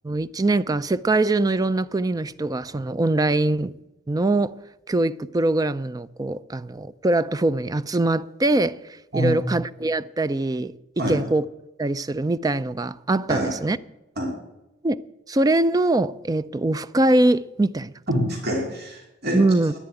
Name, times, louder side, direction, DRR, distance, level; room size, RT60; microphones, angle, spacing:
voice 1, 0.0-3.7 4.1-4.5 4.9-10.7 11.1-11.4 11.8-13.8 14.8-15.0 15.3-17.9 19.3-19.7, right 2 dB, 20° right, 0.4 m, -22 dB
voice 2, 18.1-19.4, equal, 55° right, 2.7 m, -25 dB
10.5 x 10.0 x 8.9 m
head